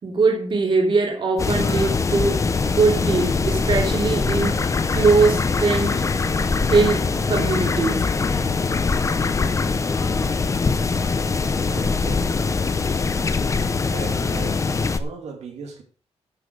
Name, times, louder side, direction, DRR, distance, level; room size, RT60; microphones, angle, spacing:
voice 1, 0.0-4.6 4.9-6.0 6.7-8.1, right 4 dB, 45° right, 3.1 m, -21 dB
sound 1, 1.4-15.0, left 4 dB, 30° left, 0.8 m, -22 dB
voice 2, 11.5-12.3 13.9-15.8, right 5 dB, 85° right, 2.6 m, -39 dB
9.8 x 7.4 x 6.5 m
wide cardioid pair, 180°, 11 cm